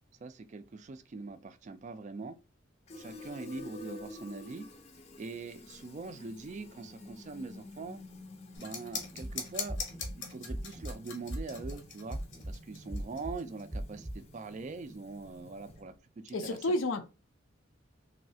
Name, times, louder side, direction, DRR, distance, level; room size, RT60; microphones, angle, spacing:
voice 1, 0.2-2.4 3.0-4.7 5.2-8.0 8.6-9.8 10.1-12.2 12.5-16.6, right 3 dB, 40° right, 0.3 m, -43 dB
Fill (with liquid), 2.9-16.0, left 2 dB, 35° left, 0.5 m, -51 dB
sound 1, 8.5-13.6, left 5 dB, 65° left, 0.8 m, -41 dB
sound 2, 9.1-9.3 9.7-10.1 10.5-10.9 11.3-11.7 12.1-12.5 12.9-13.3 13.7-14.1, right 1 dB, 15° right, 0.7 m, -38 dB
voice 2, 16.3-17.0, left 1 dB, 80° left, 0.5 m, -30 dB
3.1 x 2.7 x 2.7 m
head